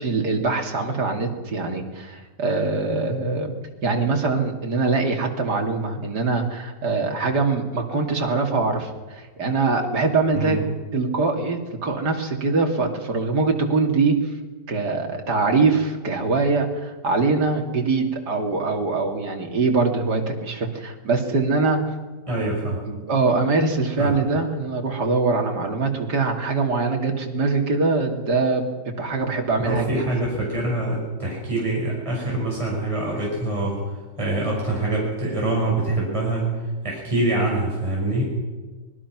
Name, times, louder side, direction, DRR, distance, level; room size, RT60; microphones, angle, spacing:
voice 1, 0.0-3.6 3.8-10.6 10.9-14.1 14.7-21.8 22.9-28.6 29.0-30.0, right 3 dB, 65° right, 2 dB, 3.3 m, -23 dB
voice 2, 22.3-22.8 24.0-24.1 29.6-38.2, right 2 dB, 15° right, -3 dB, 5.9 m, -25 dB
24.5 x 21.5 x 6.1 m, 1.3 s
omnidirectional pair, 1.9 m